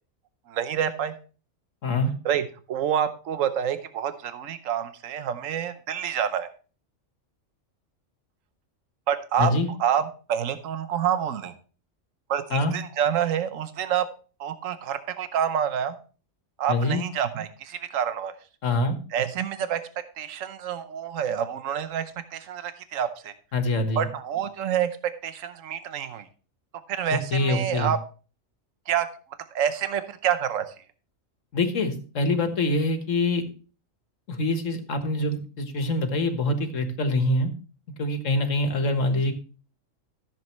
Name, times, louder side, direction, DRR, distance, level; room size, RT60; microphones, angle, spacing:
voice 1, 0.5-1.1 2.2-6.5 9.1-9.5 9.8-10.0 10.3-11.5 12.3-14.1 14.4-15.9 16.6-18.3 19.1-19.8 20.2-22.0 22.3-23.3 24.0-24.9 25.2-26.2 26.9-28.0 28.9-29.1 29.5-30.6, right 9 dB, 80° right, 10 dB, 1.2 m, -27 dB
voice 2, 16.7-17.0 18.6-19.0 23.5-24.1 27.1-27.9 31.5-33.4 34.3-37.5 38.0-39.3, left 2 dB, 75° left, 7 dB, 1.7 m, -25 dB
14.0 x 7.4 x 3.1 m, 0.38 s
omnidirectional pair, 1.3 m